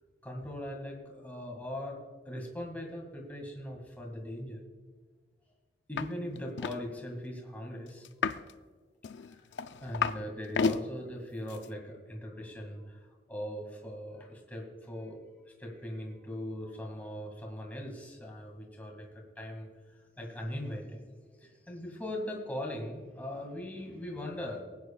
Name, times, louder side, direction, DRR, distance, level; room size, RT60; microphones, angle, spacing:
voice 1, 0.2-4.6 5.9-8.1 9.2-9.4 9.8-24.6, left 1 dB, 10° left, 0 dB, 2.2 m, -40 dB
sound 1, 6.0-6.1 6.3-6.8 8.0-8.5 9.0-10.2 10.5-10.8 11.5-11.6, left 5 dB, 75° left, 0.4 m, -31 dB
19.5 x 9.5 x 2.4 m, 1.4 s
head